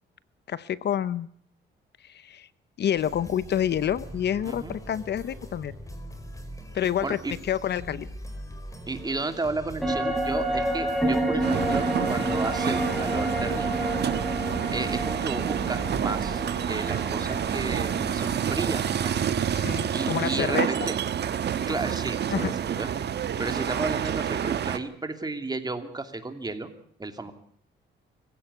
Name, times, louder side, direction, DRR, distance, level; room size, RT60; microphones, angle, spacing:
voice 1, 0.5-1.3 2.0-2.5 2.8-5.7 6.7-7.2 7.4-8.1 19.5-20.7 22.3-22.6, left 10 dB, 60° left, 16 dB, 0.9 m, -28 dB
sound 1, 3.0-19.6, equal, 15° left, 4.7 m, -41 dB
voice 2, 4.5-4.8 7.0-7.3 8.9-13.9 14.7-16.4 16.7-19.1 19.9-20.9 21.7-22.9 23.4-26.7 27.0-27.3, right 3 dB, 20° right, 7 dB, 2.8 m, -33 dB
sound 2, 9.8-19.3 19.6-19.7, right 1 dB, ahead, 7.8 m, -30 dB
sound 3, 11.4-24.8, right 8 dB, 60° right, 1.4 m, -28 dB
24.5 x 16.0 x 8.3 m, 0.62 s
cardioid pair, 90°, 20 cm